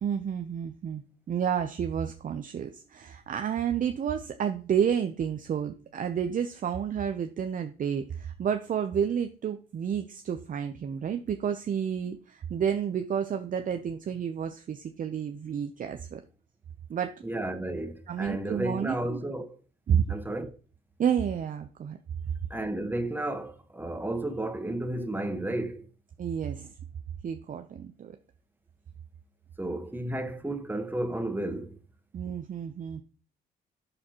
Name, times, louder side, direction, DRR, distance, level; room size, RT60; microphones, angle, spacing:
voice 1, 0.0-1.0 1.3-16.2 16.9-17.1 18.1-19.2 19.9-20.0 21.0-22.0 26.2-26.7 27.2-28.2 32.1-33.0, right 8 dB, 45° right, 0.7 m, -30 dB
voice 2, 17.2-19.6 20.1-20.6 22.5-25.9 29.6-31.8, right 1 dB, 10° right, 1.3 m, -32 dB
11.5 x 4.1 x 3.0 m
supercardioid pair, 65°, 19 cm